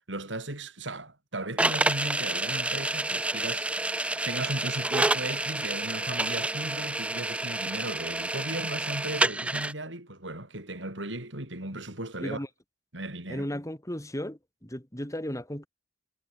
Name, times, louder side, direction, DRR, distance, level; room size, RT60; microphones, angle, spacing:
voice 1, 0.1-12.4 12.9-13.5, right 1 dB, 75° right, 7.1 m, -36 dB
sound 1, 1.6-9.7, right 2 dB, 5° right, 0.3 m, -29 dB
voice 2, 13.3-15.7, equal, 15° left, 4.8 m, -35 dB
head